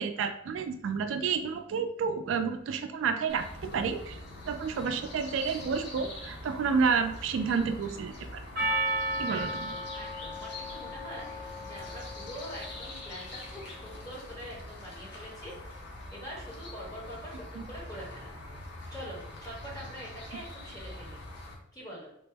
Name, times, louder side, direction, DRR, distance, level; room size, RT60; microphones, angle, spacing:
voice 1, 0.0-8.7 9.2-9.8 17.6-17.7, right 5 dB, 75° right, 8 dB, 0.3 m, -30 dB
sound 1, 3.3-21.5, left 1 dB, 55° left, 0.8 m, -44 dB
Percussion, 8.6-13.2, right 1 dB, 45° right, 0.8 m, -35 dB
voice 2, 9.3-15.6 16.0-18.4 18.6-21.2 21.7-22.1, equal, 20° left, -5 dB, 1.1 m, -44 dB
3.4 x 2.0 x 3.3 m, 0.78 s
head